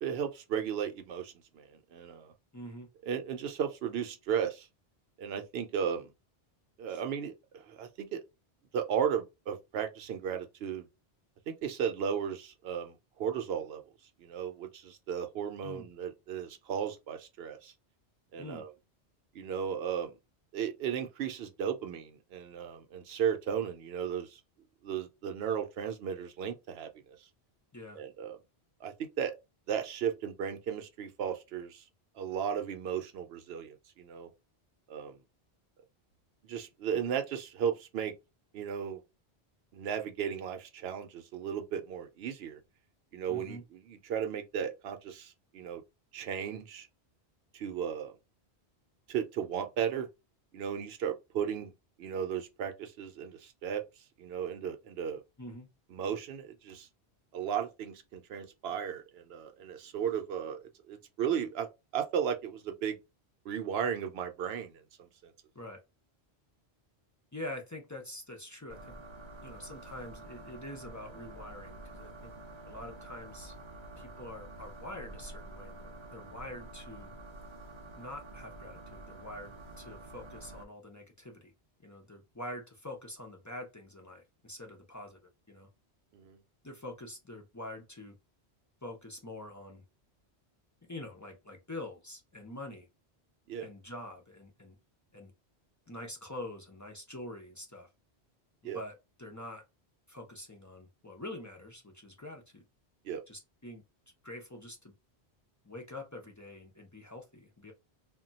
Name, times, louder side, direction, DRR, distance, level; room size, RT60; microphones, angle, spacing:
voice 1, 0.0-2.3 3.1-4.7 5.2-6.1 6.8-8.2 8.7-10.9 11.5-13.8 14.2-17.7 18.3-18.7 19.3-20.1 20.5-24.4 24.8-26.9 27.9-28.4 28.8-29.3 29.7-31.8 32.1-34.3 34.9-35.2 36.4-38.1 38.5-39.0 39.7-42.6 43.1-45.8 46.1-46.9 47.5-48.1 49.1-50.1 50.5-51.7 52.0-53.8 54.2-55.2 55.9-56.9 57.3-63.0 63.4-64.7 65.0-65.3 86.1-86.4 93.5-93.7 98.6-98.8 103.0-103.2, right 8 dB, 70° right, 0.8 m, -35 dB
voice 2, 2.5-2.9 6.9-7.0 15.6-15.9 18.4-18.6 27.7-28.0 43.3-43.6 55.4-55.7 65.5-65.8 67.3-68.8 69.4-72.3 72.7-73.5 74.0-77.1 77.9-81.5 81.8-85.2 85.5-85.7 86.6-88.2 88.8-89.8 90.9-92.9 93.6-94.8 95.1-95.3 95.9-97.9 98.6-99.6 100.1-102.6 103.3-103.8 104.2-104.9 105.6-107.7, left 1 dB, 25° left, 0.4 m, -45 dB
sound 1, 68.7-80.6, right 2 dB, 55° right, 0.3 m, -48 dB
2.2 x 2.2 x 3.9 m
omnidirectional pair, 1.1 m